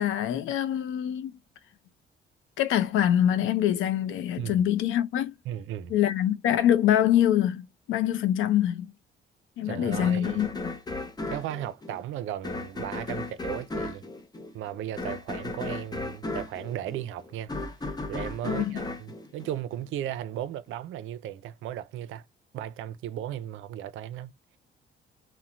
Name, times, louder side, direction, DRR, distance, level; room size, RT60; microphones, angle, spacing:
voice 1, 0.0-1.3 2.6-5.3 5.9-8.9 9.6-10.8 18.4-18.8, left 11 dB, 85° left, 0.5 m, -25 dB
voice 2, 5.5-5.9 9.6-10.5 11.3-14.0 14.5-17.5 17.8-22.2 22.5-24.3, right 11 dB, 80° right, 0.5 m, -36 dB
sound 1, 9.9-20.1, left 2 dB, 20° left, 0.7 m, -36 dB
2.9 x 2.1 x 2.5 m
cardioid pair, 90°, 20 cm